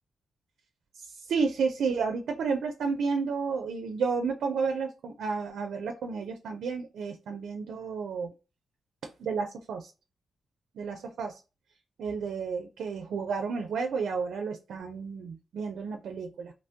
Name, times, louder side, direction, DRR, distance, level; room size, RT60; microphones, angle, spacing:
voice 1, 1.0-8.3 9.2-9.9 10.8-11.3 12.0-16.5, right 5 dB, 80° right, 5 dB, 0.4 m, -31 dB
3.0 x 2.1 x 2.6 m, 0.29 s
cardioid pair, 55°, 0 cm